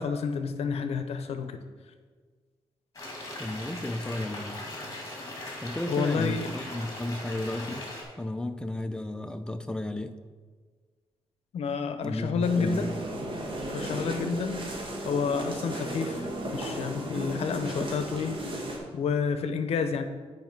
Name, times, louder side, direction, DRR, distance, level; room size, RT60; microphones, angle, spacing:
voice 1, 0.0-1.6 5.9-6.5 11.5-12.9 13.7-14.6 15.0-16.3 16.5-18.6 18.9-20.0, left 5 dB, 70° left, 9 dB, 0.7 m, -29 dB
sound 1, 2.9-8.0, left 1 dB, 30° left, 2.4 m, -39 dB
voice 2, 3.4-4.6 5.6-7.9 8.2-10.1 12.0-12.9, left 1 dB, 10° left, 8 dB, 0.5 m, -33 dB
sound 2, 12.4-18.8, right 1 dB, 50° right, 1.8 m, -35 dB
9.6 x 5.0 x 4.6 m, 1.5 s
cardioid pair, 130°, 11 cm